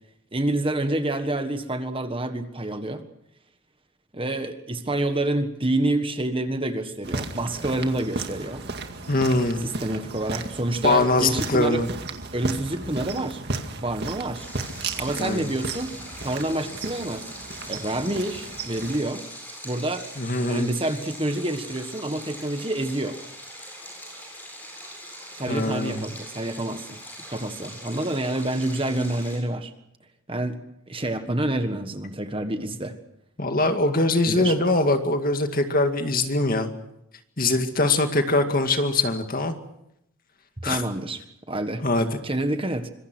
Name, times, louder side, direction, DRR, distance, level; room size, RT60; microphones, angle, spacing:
voice 1, 0.3-3.1 4.1-8.7 9.6-11.8 12.3-13.4 13.8-14.5 15.0-17.3 17.7-19.2 19.6-20.1 20.5-23.2 25.3-27.0 27.3-29.7 30.3-30.6 30.9-33.0 34.2-34.5 40.6-41.2 41.5-41.8 42.2-42.9, right 1 dB, 25° right, 8 dB, 1.5 m, -28 dB
sound 1, 7.0-19.0, right 3 dB, 50° right, 2.1 m, -34 dB
voice 2, 9.1-9.7 10.8-11.9 15.2-15.5 20.2-20.7 25.5-26.0 33.4-36.7 37.4-39.5 40.6-40.8 41.8-42.1, left 2 dB, 40° left, 6 dB, 2.1 m, -22 dB
Stream, 14.4-29.4, equal, 10° left, 7.9 m, -41 dB
25.5 x 23.0 x 6.2 m, 0.79 s
head